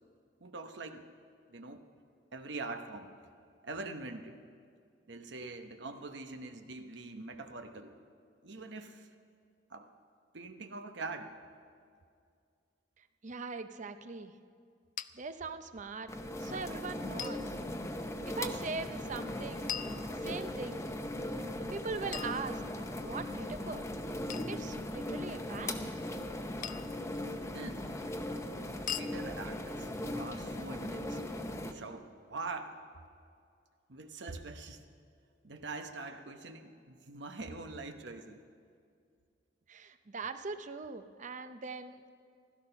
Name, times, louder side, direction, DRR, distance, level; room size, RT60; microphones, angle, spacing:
voice 1, 0.4-1.1 1.5-1.8 2.3-3.1 3.6-4.4 5.1-8.0 8.4-9.1 9.7-9.9 10.3-11.3 27.5-28.0 28.9-29.9 30.2-31.2 31.6-32.8 33.9-34.8 35.4-38.4, right 3 dB, 75° right, 7 dB, 1.0 m, -43 dB
voice 2, 13.0-14.3 15.1-16.1 16.4-17.6 18.2-19.8 20.1-20.8 21.7-22.6 23.0-23.9 24.5-25.7 39.7-42.1, right 4 dB, 45° right, 10 dB, 0.7 m, -41 dB
sound 1, 15.0-15.1 17.2-17.4 19.7-20.6 22.1-23.0 24.3-24.6 26.6-27.0 28.9-29.1, left 10 dB, 45° left, 0.4 m, -41 dB
sound 2, 16.1-31.7, left 1 dB, 15° left, 0.8 m, -39 dB
16.0 x 13.0 x 5.7 m, 2.3 s
head